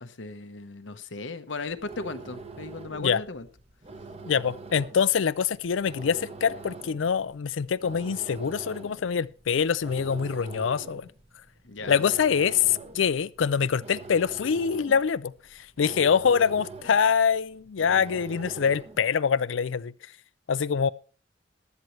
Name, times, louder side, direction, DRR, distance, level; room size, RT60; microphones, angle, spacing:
voice 1, 0.0-3.4 11.6-12.0, left 3 dB, 75° left, 1.1 m, -36 dB
sound 1, 1.6-19.2, right 3 dB, 35° right, 1.2 m, -44 dB
voice 2, 4.2-11.1 11.9-15.3 15.8-19.9 20.5-20.9, left 7 dB, 90° left, 0.5 m, -24 dB
15.0 x 10.5 x 3.2 m
head